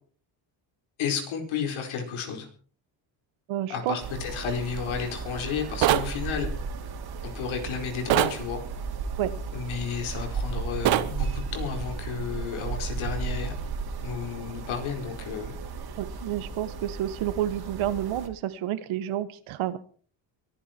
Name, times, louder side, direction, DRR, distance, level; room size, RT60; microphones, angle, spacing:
voice 1, 1.0-2.5 3.7-6.5 7.2-8.6 9.5-13.6 14.0-15.6, left 7 dB, 80° left, 5 dB, 4.7 m, -32 dB
voice 2, 3.5-4.0 9.2-9.3 16.0-19.8, right 12 dB, 90° right, 13 dB, 1.6 m, -30 dB
sound 1, 4.0-18.3, right 5 dB, 50° right, 3.0 m, -35 dB
sound 2, 5.8-6.1 8.1-8.4 10.8-11.1, right 13 dB, 70° right, 1.2 m, -22 dB
23.0 x 11.0 x 4.5 m, 0.44 s
cardioid pair, 130°, 47 cm